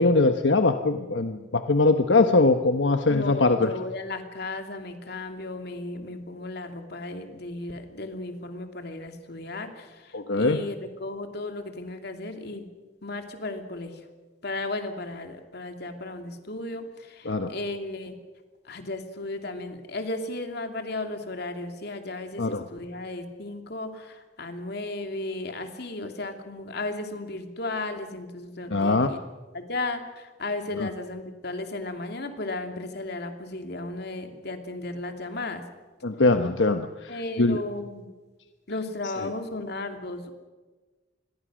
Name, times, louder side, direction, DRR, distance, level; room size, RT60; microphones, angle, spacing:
voice 1, 0.0-3.7 10.1-10.6 17.2-17.5 22.4-22.6 28.7-29.1 30.8-30.9 36.0-37.1 37.4-37.6, left 3 dB, 85° left, 7 dB, 1.1 m, -21 dB
voice 2, 3.1-12.7 13.0-14.0 14.4-18.1 18.6-29.2 29.5-35.6 37.1-38.1 38.7-40.3, left 2 dB, 65° left, 5 dB, 2.8 m, -35 dB
27.0 x 22.0 x 6.4 m, 1.3 s
head